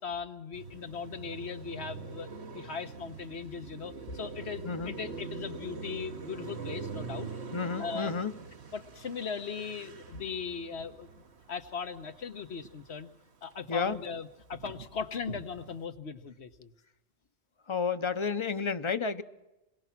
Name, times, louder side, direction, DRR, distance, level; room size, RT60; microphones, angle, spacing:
voice 1, 0.0-2.3 2.5-7.3 7.8-8.1 8.7-11.1 11.5-13.1 13.4-16.7, left 6 dB, 70° left, 8 dB, 1.5 m, -38 dB
Car passing by, 0.5-13.0 13.3-15.8, right 4 dB, 70° right, 1.6 m, -44 dB
voice 2, 4.6-4.9 7.5-8.3 13.7-14.0 17.7-19.2, left 5 dB, 30° left, 11 dB, 0.9 m, -31 dB
28.0 x 22.0 x 6.0 m, 1.0 s
omnidirectional pair, 1.1 m